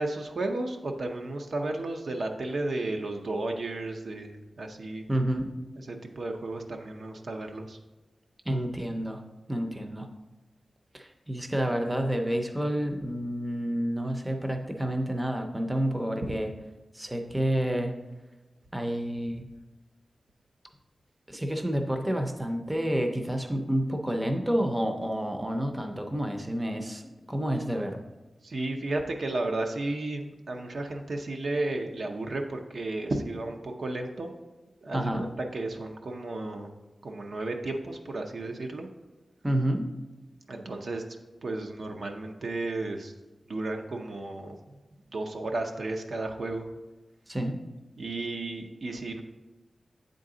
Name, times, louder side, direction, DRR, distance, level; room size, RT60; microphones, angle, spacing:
voice 1, 0.0-5.1 5.9-7.8 28.4-34.3 34.8-35.3 35.5-36.7 37.0-38.9 40.5-41.0 41.4-43.1 43.5-44.6 45.1-46.6 48.0-49.2, right 2 dB, 65° right, 3 dB, 0.6 m, -33 dB
voice 2, 5.1-5.5 8.5-9.2 9.5-10.1 10.9-16.5 16.9-17.9 18.7-19.5 21.3-27.0 27.3-28.0 34.9-35.3 39.4-39.8 47.3-47.6, right 1 dB, 15° right, 4 dB, 0.5 m, -29 dB
8.4 x 3.8 x 3.8 m, 1.1 s
wide cardioid pair, 125°, 0 cm